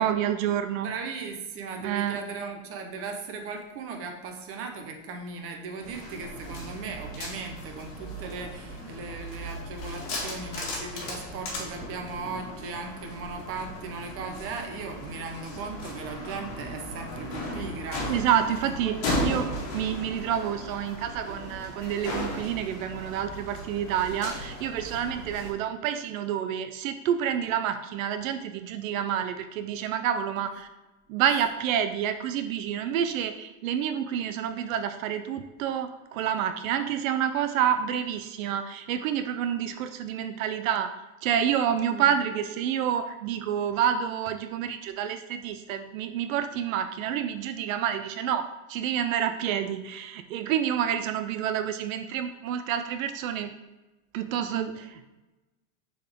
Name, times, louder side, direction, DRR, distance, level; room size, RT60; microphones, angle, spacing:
voice 1, 0.0-0.9 1.8-2.2 18.1-19.0 19.2-30.7 31.1-40.9 41.2-53.5 54.1-55.1, right 9 dB, 80° right, 8 dB, 0.6 m, -28 dB
voice 2, 0.8-19.2 31.2-31.5 41.9-42.1, right 4 dB, 35° right, 4 dB, 0.9 m, -38 dB
sound 1, 5.8-25.5, left 1 dB, 45° left, 1.8 m, -36 dB
6.6 x 4.0 x 3.6 m, 1.1 s
supercardioid pair, 145°, 40 cm